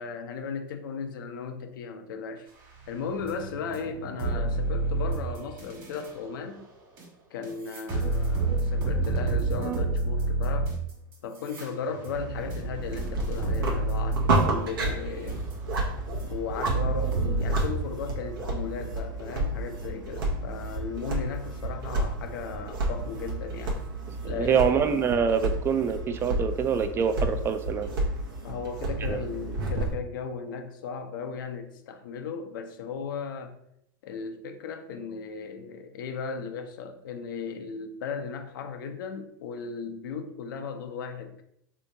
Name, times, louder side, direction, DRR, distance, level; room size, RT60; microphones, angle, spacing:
voice 1, 0.0-2.5 2.9-6.7 7.3-10.7 11.2-15.4 16.1-23.7 24.2-24.6 28.4-33.6 34.0-41.4, left 5 dB, 70° left, 0.5 m, -36 dB
sound 1, 2.8-6.1 7.0-7.1 7.4-15.8 16.2-16.3 16.7-17.7, right 2 dB, 40° right, 1.4 m, -29 dB
sound 2, 12.1-29.9, right 2 dB, 80° right, 0.8 m, -31 dB
voice 2, 24.4-27.9 29.1-29.2, right 7 dB, 20° right, 0.3 m, -25 dB
3.4 x 2.8 x 2.7 m
hypercardioid pair, 115°, 11 cm